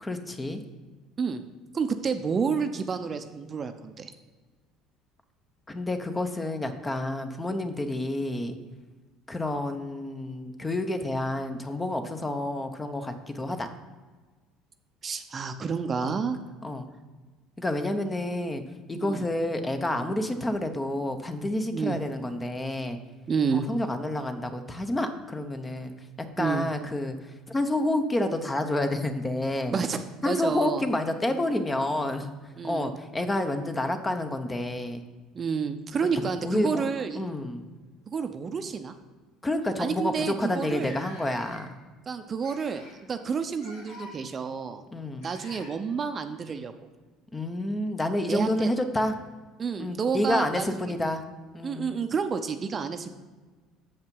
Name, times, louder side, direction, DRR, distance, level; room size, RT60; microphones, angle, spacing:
voice 1, 0.0-0.6 5.7-8.6 9.3-13.7 16.0-16.2 16.6-16.9 17.6-18.6 18.9-23.0 23.5-25.9 26.4-29.7 30.2-32.3 32.6-35.0 36.1-36.9 37.2-37.6 39.4-41.7 44.9-45.3 47.3-49.2 49.8-51.3 51.5-51.9, left 1 dB, 20° left, 8 dB, 0.7 m, -29 dB
voice 2, 1.7-4.1 15.0-16.4 18.9-19.2 21.7-22.0 23.3-23.7 26.4-26.7 29.7-30.8 32.6-32.9 35.3-37.2 38.1-38.9 39.8-40.9 42.1-42.8 43.1-44.8 45.2-46.7 48.3-48.7 49.6-50.9 51.6-53.1, right 5 dB, 35° right, 8 dB, 0.6 m, -30 dB
sound 1, 35.9-37.0 38.1-38.2 38.6-38.8 39.5-39.6 39.8-39.9 40.5-41.9 42.4-43.0 43.5-44.1 45.2-45.7 47.9-48.0 49.0-49.1, left 2 dB, 85° left, 2.2 m, -48 dB
6.7 x 5.5 x 5.3 m, 1.3 s
supercardioid pair, 90°, 0 cm